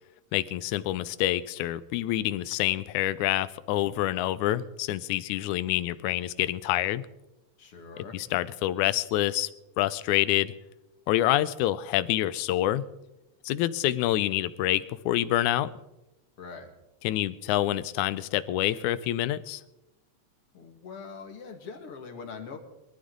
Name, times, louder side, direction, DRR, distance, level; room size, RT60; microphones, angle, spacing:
voice 1, 0.3-7.0 8.1-9.5 9.8-10.5 11.1-12.8 13.5-15.7 17.0-19.6, left 14 dB, 80° left, 15 dB, 2.0 m, -27 dB
voice 2, 7.6-8.2 16.4-16.7 20.5-22.6, left 5 dB, 50° left, 4 dB, 2.7 m, -42 dB
23.0 x 13.0 x 3.9 m, 0.95 s
omnidirectional pair, 3.6 m